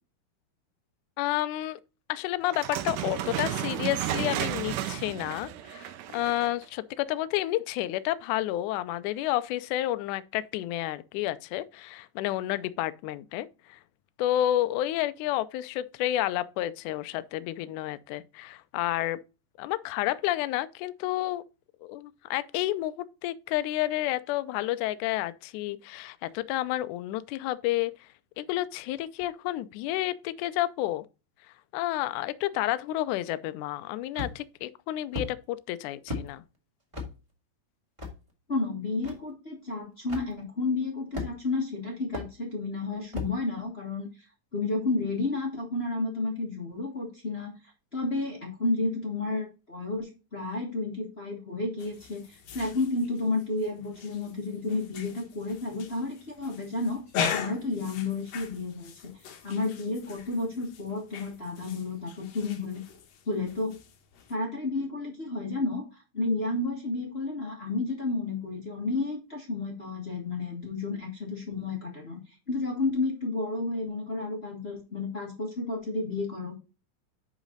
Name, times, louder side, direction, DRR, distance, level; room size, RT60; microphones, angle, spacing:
voice 1, 1.2-1.8 2.1-13.8 14.2-19.2 19.6-21.4 21.8-27.9 28.4-31.1 31.7-36.4, left 14 dB, 85° left, 1.8 m, -30 dB
sound 1, 2.5-6.6, right 11 dB, 75° right, 2.1 m, -33 dB
sound 2, 34.1-34.6 35.1-35.3 36.1-36.3 36.9-37.1 38.0-38.2 39.0-39.1 40.1-40.3 41.1-41.6 42.1-42.3 43.1-43.4, left 3 dB, 15° right, 1.3 m, -34 dB
voice 2, 38.5-44.1 44.5-47.5 47.9-57.0 57.3-58.9 59.4-62.8 63.3-63.7 64.3-72.2 72.5-76.5, left 3 dB, 50° left, 0.7 m, -31 dB
sound 3, 51.8-64.3, left 7 dB, 65° left, 1.7 m, -40 dB
10.5 x 4.1 x 3.8 m
omnidirectional pair, 4.1 m